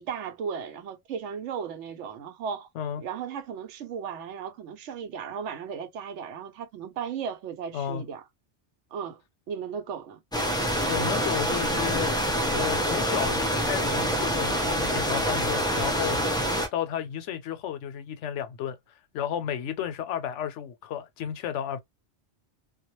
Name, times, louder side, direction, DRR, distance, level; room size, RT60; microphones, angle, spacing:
voice 1, 0.0-2.7 3.0-8.3 8.9-9.2 9.5-10.2, right 7 dB, 90° right, 0.9 m, -35 dB
sound 1, 10.3-16.7, equal, 5° left, 0.3 m, -26 dB
voice 2, 10.9-12.1 12.5-16.3 16.7-18.8 19.1-21.8, left 9 dB, 85° left, 0.9 m, -32 dB
2.3 x 2.1 x 2.9 m
omnidirectional pair, 1.2 m